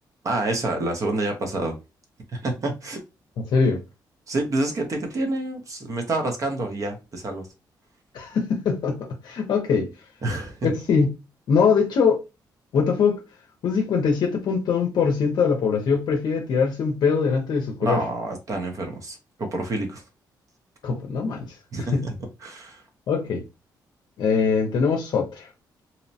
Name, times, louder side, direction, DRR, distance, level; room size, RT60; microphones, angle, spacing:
voice 1, 0.2-1.8 2.3-3.0 4.3-7.5 10.2-10.7 17.8-20.0 21.7-22.1 22.4-22.8, right 2 dB, 45° right, 0.7 m, -28 dB
voice 2, 3.4-3.8 8.1-9.9 10.6-11.2 11.5-12.2 12.7-13.2 13.6-18.0 20.8-21.6 21.9-22.1 23.1-23.4 24.2-25.5, left 5 dB, 70° left, 0.5 m, -22 dB
2.8 x 2.0 x 2.7 m
cardioid pair, 115°, 8 cm